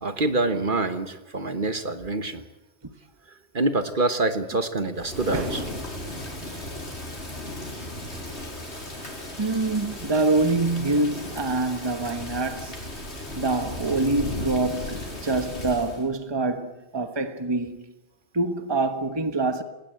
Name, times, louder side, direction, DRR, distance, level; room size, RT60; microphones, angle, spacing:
voice 1, 0.0-2.4 3.5-5.6, right 2 dB, 50° right, 1.5 m, -26 dB
Thunder / Rain, 5.0-16.0, left 1 dB, 85° left, 4.9 m, -35 dB
voice 2, 9.4-12.8 13.4-17.8 18.3-19.6, right 2 dB, 25° right, 1.3 m, -25 dB
19.5 x 19.0 x 9.0 m
omnidirectional pair, 1.1 m